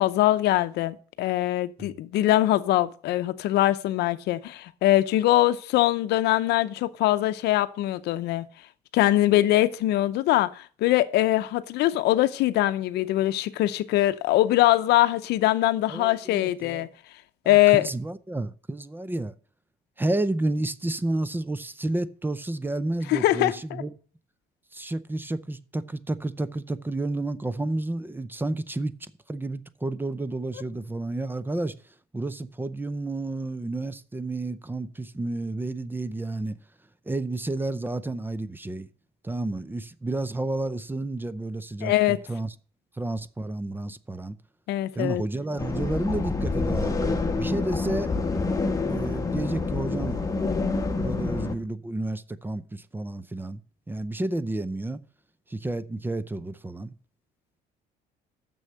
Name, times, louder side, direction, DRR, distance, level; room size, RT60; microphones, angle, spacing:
voice 1, 0.0-8.4 8.9-16.9 17.5-17.8 23.1-23.5 41.8-42.2 44.7-45.2, left 15 dB, 80° left, 0.7 m, -22 dB
voice 2, 15.9-16.9 17.4-19.3 20.0-23.9 24.7-28.9 29.3-36.6 37.1-38.9 39.2-42.5 42.9-44.4 45.0-48.1 48.8-50.2 51.0-53.6 53.9-55.0 55.5-56.9, right 2 dB, 10° right, 0.6 m, -31 dB
sound 1, 45.6-51.5, left 3 dB, 20° left, 1.2 m, -27 dB
7.0 x 6.4 x 7.6 m
cardioid pair, 110°, 17 cm